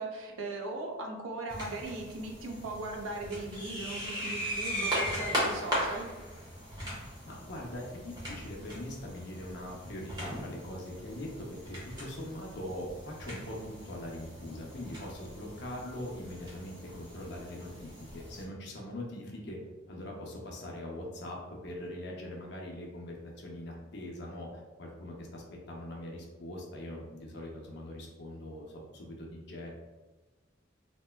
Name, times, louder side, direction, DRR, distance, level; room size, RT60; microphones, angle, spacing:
voice 1, 0.0-6.1, right 2 dB, 85° right, 1 dB, 0.6 m, -38 dB
sound 1, 1.5-18.4, equal, 20° right, 0.9 m, -39 dB
voice 2, 7.2-19.6 19.9-29.7, left 1 dB, 55° left, -1 dB, 0.6 m, -42 dB
3.3 x 2.9 x 2.2 m, 1.2 s
head